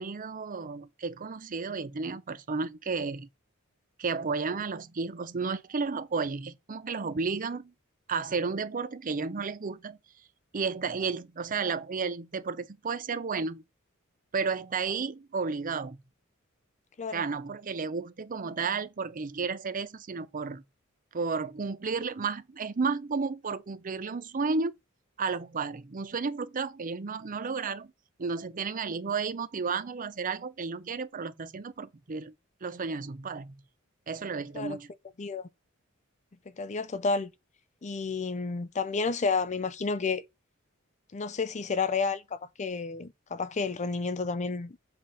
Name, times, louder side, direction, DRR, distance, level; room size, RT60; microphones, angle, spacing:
voice 1, 0.0-3.3 4.0-7.7 8.1-10.0 10.5-13.6 14.3-16.0 17.1-20.6 21.1-24.7 25.2-27.9 28.2-32.3 32.6-33.6 34.1-34.9, right 4 dB, 40° right, 0.6 m, -32 dB
voice 2, 35.2-35.5 36.6-37.3 37.8-40.2 41.1-44.8, left 4 dB, 35° left, 0.5 m, -31 dB
7.7 x 3.4 x 5.6 m
head